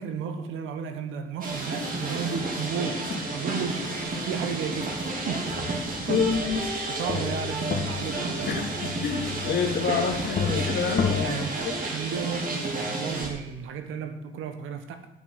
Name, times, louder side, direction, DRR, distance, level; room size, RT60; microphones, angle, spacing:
voice 1, 0.0-5.6 6.1-6.5 6.9-8.5 10.1-10.3 11.2-15.1, right 7 dB, 90° right, 8 dB, 1.3 m, -34 dB
sound 1, 1.4-13.3, right 2 dB, 45° right, 2.7 m, -31 dB
sound 2, 5.9-6.1 6.4-11.3, left 6 dB, 45° left, 1.7 m, -32 dB
voice 2, 6.1-6.6 8.5-11.7, left 6 dB, 60° left, 2 dB, 2.6 m, -28 dB
8.7 x 6.8 x 7.8 m, 1.0 s
cardioid pair, 90°, 20 cm